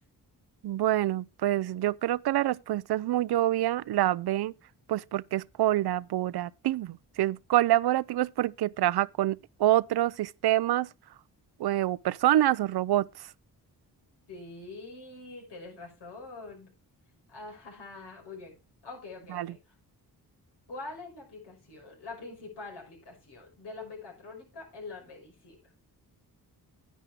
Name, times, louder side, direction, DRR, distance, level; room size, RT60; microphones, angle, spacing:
voice 1, 0.6-4.5 4.9-10.9 11.6-13.1 19.3-19.5, right 14 dB, 75° right, 0.5 m, -26 dB
voice 2, 14.3-16.7 17.3-18.5 18.8-19.7 20.7-25.7, left 3 dB, 90° left, 5.8 m, -44 dB
10.5 x 9.4 x 3.5 m
cardioid pair, 60°, 40 cm